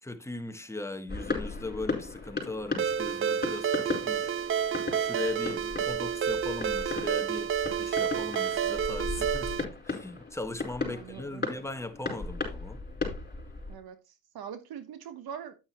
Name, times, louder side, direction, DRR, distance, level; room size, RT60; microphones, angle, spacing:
voice 1, 0.0-4.5 5.0-12.8, left 2 dB, 5° left, 1.4 m, -39 dB
sound 1, 1.1-13.8, left 4 dB, 25° left, 4.7 m, -37 dB
Ringtone, 2.8-9.7, right 8 dB, 35° right, 0.4 m, -30 dB
voice 2, 10.8-11.5 13.7-15.5, right 8 dB, 70° right, 1.3 m, -43 dB
9.3 x 8.8 x 3.0 m
supercardioid pair, 75°, 38 cm